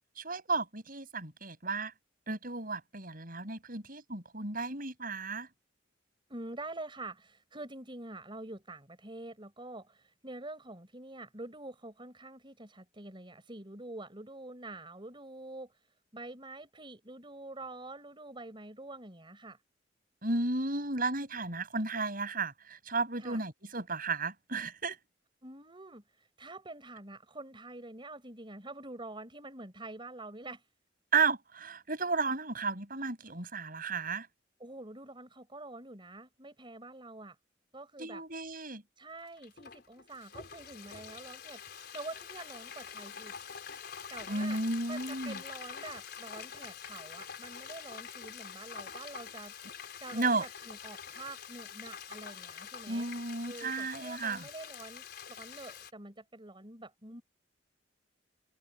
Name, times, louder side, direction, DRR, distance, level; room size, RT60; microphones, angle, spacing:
voice 1, 0.2-1.9 2.3-5.5 20.2-25.0 31.1-34.3 38.0-38.8 44.3-45.4 50.1-50.4 52.9-54.4, right 3 dB, 50° right, 6.7 m, -33 dB
voice 2, 6.3-15.8 16.1-19.6 23.2-23.4 25.4-30.6 34.6-37.4 37.7-38.2 39.0-43.4 44.1-44.6 44.9-49.6 50.0-53.1 53.4-57.2, right 2 dB, 25° right, 4.5 m, -46 dB
Frying (food), 39.2-55.9, left 7 dB, 60° left, 4.4 m, -46 dB
head